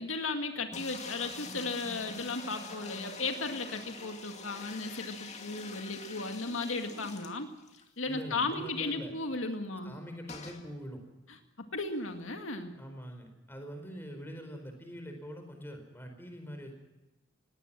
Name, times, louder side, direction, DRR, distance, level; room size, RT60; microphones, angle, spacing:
voice 1, 0.0-7.5 8.0-10.0 11.7-12.7, left 3 dB, 80° left, 5 dB, 2.1 m, -35 dB
sound 1, 0.7-7.9 8.2-8.3 8.5-8.6 10.3-10.6, left 4 dB, 35° left, 2.3 m, -45 dB
voice 2, 8.1-9.1 9.8-11.0 12.8-16.7, equal, 10° left, 5 dB, 4.5 m, -44 dB
20.0 x 17.5 x 7.4 m, 1.1 s
head